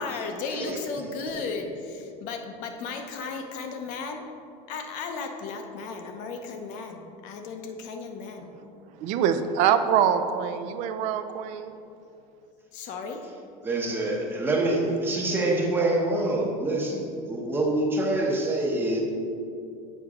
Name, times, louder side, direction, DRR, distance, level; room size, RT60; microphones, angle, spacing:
voice 1, 0.0-4.2 4.7-8.5 12.7-13.2, left 4 dB, 50° left, 5 dB, 0.7 m, -35 dB
voice 2, 9.0-11.6, right 8 dB, 45° right, 10 dB, 0.4 m, -24 dB
voice 3, 13.6-19.0, right 2 dB, 10° right, -1 dB, 0.8 m, -26 dB
8.0 x 5.8 x 3.7 m, 2.6 s
cardioid pair, 175°, 17 cm